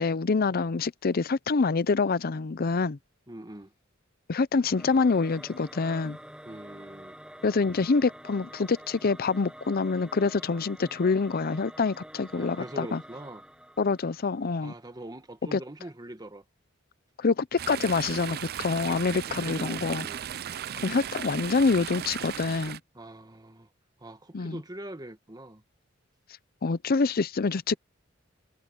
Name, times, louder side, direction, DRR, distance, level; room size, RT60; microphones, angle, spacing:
voice 1, 0.0-3.0 4.3-6.2 7.4-13.0 13.8-14.7 15.5-15.6 17.2-20.0 20.8-22.8 24.3-24.6 26.6-27.8, left 4 dB, 50° left, 0.6 m, -26 dB
voice 2, 3.3-3.7 6.5-7.2 12.3-13.4 14.6-16.4 18.8-20.2 22.9-23.7 24.0-25.6, right 1 dB, 20° right, 1.7 m, -43 dB
Singing / Musical instrument, 4.7-14.7, equal, 5° right, 6.6 m, -48 dB
Chatter / Stream, 17.6-22.8, right 9 dB, 50° right, 0.5 m, -36 dB
head